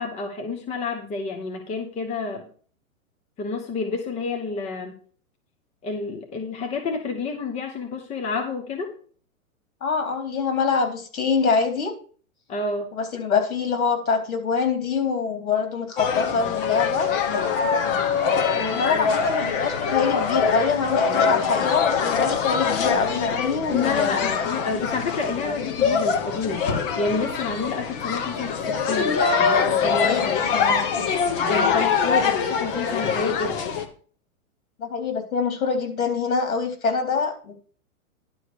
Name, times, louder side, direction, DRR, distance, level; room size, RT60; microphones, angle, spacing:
voice 1, 0.0-2.5 3.4-4.9 5.8-9.0 12.5-12.9 18.6-19.0 23.7-26.7 27.0-30.2 31.4-33.6, left 4 dB, 15° left, 3 dB, 1.2 m, -29 dB
voice 2, 9.8-11.9 13.0-17.1 18.5-24.4 29.9-30.8 32.2-32.3 34.8-37.5, left 5 dB, 75° left, 5 dB, 3.9 m, -25 dB
sound 1, 16.0-33.9, left 6 dB, 40° left, 1.5 m, -23 dB
11.0 x 4.9 x 6.3 m, 0.43 s
hypercardioid pair, 150°, 43 cm